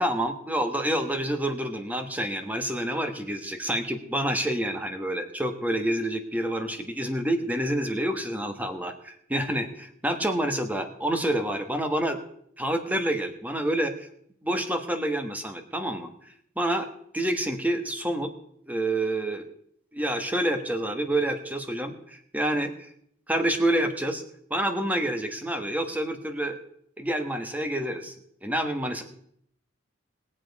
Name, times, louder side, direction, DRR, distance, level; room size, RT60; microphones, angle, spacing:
voice 1, 0.0-12.2 12.6-14.1 14.4-16.1 16.6-18.3 18.7-19.5 19.9-22.9 23.3-24.2 24.5-26.6 27.0-28.1 28.4-29.0, right 1 dB, 10° right, 7 dB, 1.3 m, -28 dB
20.5 x 7.6 x 4.7 m, 0.68 s
head